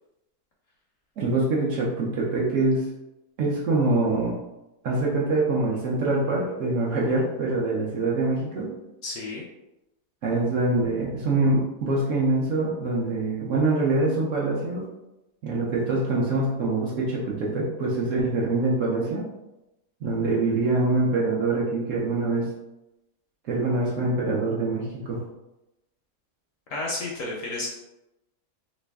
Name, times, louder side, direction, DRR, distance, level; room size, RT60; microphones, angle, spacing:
voice 1, 1.2-2.8 3.4-4.4 4.8-8.7 10.2-14.9 15.4-19.3 20.0-22.5 23.5-25.2, right 2 dB, 65° right, -4 dB, 0.9 m, -24 dB
voice 2, 9.0-9.4 26.7-27.7, left 2 dB, 70° left, -2 dB, 0.8 m, -31 dB
3.1 x 2.5 x 3.4 m, 0.93 s
omnidirectional pair, 1.8 m